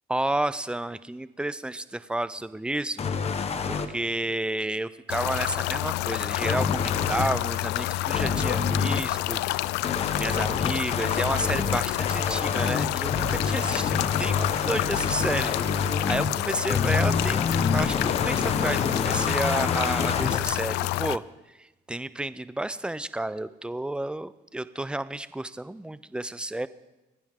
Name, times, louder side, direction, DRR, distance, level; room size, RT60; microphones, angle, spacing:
voice 1, 0.1-3.0 3.6-9.7 10.1-21.2 21.6-26.7, right 1 dB, 5° right, 15 dB, 0.5 m, -31 dB
sound 1, 3.0-3.9 6.4-7.3 8.1-9.0 9.8-16.3 16.7-20.4, left 5 dB, 40° left, 1.2 m, -27 dB
sound 2, 5.1-21.2, left 17 dB, 85° left, 0.4 m, -29 dB
27.5 x 10.5 x 3.7 m, 1.0 s
cardioid pair, 110°, 17 cm